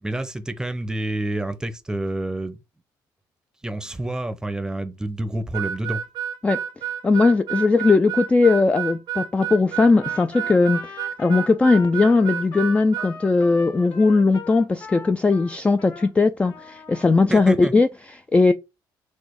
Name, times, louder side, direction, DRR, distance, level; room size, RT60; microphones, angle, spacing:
voice 1, 0.0-2.6 3.6-6.0 17.3-17.7, right 1 dB, 10° right, 0.7 m, -28 dB
Harmonica, 5.5-13.1, right 9 dB, 55° right, 0.6 m, -30 dB
voice 2, 7.0-10.8 11.2-18.5, left 3 dB, 15° left, 0.3 m, -18 dB
Trumpet, 9.9-16.1 16.4-17.2, left 4 dB, 50° left, 1.5 m, -40 dB
4.2 x 2.5 x 4.6 m
cardioid pair, 100°, 8 cm